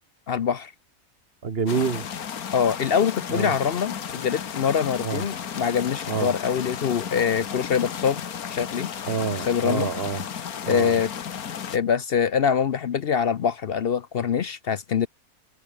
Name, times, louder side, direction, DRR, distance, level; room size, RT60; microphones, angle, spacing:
voice 1, 0.3-0.7 2.5-8.2 8.5-8.9 9.5-9.9 10.7-11.1 11.7-15.1, left 7 dB, 55° left, 0.7 m, -24 dB
voice 2, 1.4-2.0 3.3-3.5 5.0-5.2 6.1-6.3 9.1-10.2 10.6-11.0, right 5 dB, 45° right, 1.4 m, -27 dB
sound 1, 1.7-11.8, left 8 dB, 85° left, 1.8 m, -34 dB
omnidirectional pair, 1.5 m